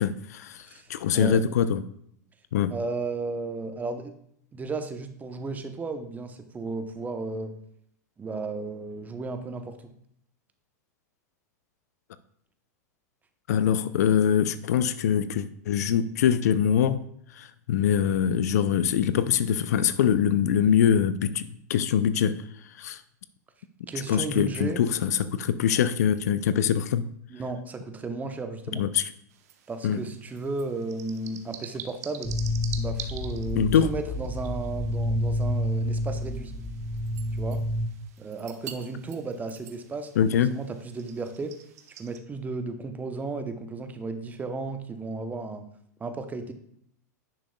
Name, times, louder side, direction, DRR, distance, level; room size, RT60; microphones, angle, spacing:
voice 1, 0.0-0.6 0.9-1.8 2.5-2.7 13.5-17.0 17.4-22.4 22.8-23.0 24.1-27.0 28.8-29.0 29.8-30.0 33.6-33.9 40.2-40.6, left 8 dB, 65° left, 14 dB, 0.5 m, -23 dB
voice 2, 0.6-1.4 2.7-4.1 4.5-7.6 8.2-9.7 23.9-24.8 27.3-28.8 29.7-32.3 32.8-36.5 37.3-37.6 38.2-40.2 40.5-41.5 42.0-45.6 46.0-46.5, right 3 dB, 15° right, 7 dB, 0.8 m, -34 dB
sound 1, 29.3-42.2, right 9 dB, 65° right, 0.8 m, -46 dB
sound 2, 32.2-37.9, left 1 dB, 10° left, 1.0 m, -29 dB
10.0 x 6.1 x 2.3 m, 0.69 s
hypercardioid pair, 95°, 9 cm